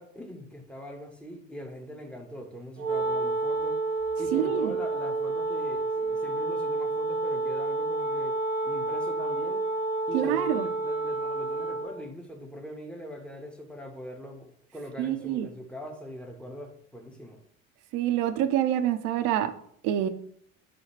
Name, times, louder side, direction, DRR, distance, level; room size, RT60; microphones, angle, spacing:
voice 1, 0.0-3.8 4.2-8.4 8.6-9.7 10.1-17.4, equal, 5° left, 2 dB, 0.7 m, -42 dB
Wind instrument woodwind instrument, 2.8-12.0, right 3 dB, 80° right, 0.8 m, -29 dB
voice 2, 4.3-4.7 10.1-10.7 15.0-15.5 17.9-19.5 19.8-20.1, right 11 dB, 40° right, 10 dB, 0.5 m, -26 dB
5.0 x 2.3 x 4.4 m, 0.65 s
figure-of-eight pair, 65°, 41 cm